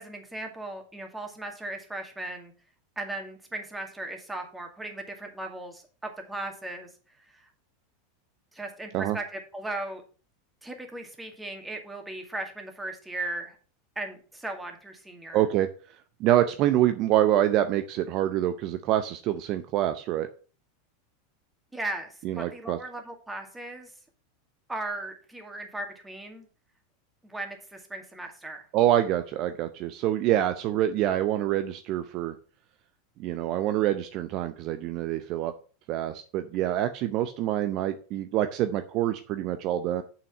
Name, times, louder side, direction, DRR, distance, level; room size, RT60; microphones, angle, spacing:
voice 1, 0.0-2.5 3.0-6.9 7.3-7.5 8.5-10.0 10.6-13.6 14.0-15.5 21.7-23.9 24.7-26.5 27.2-28.7, right 2 dB, 10° right, 4 dB, 2.1 m, -37 dB
voice 2, 15.3-15.7 16.2-20.3 22.2-22.8 28.7-32.3 33.2-35.5 35.9-40.0, right 12 dB, 50° right, 9 dB, 0.6 m, -26 dB
6.9 x 5.8 x 5.4 m, 0.39 s
hypercardioid pair, 90°, 0 cm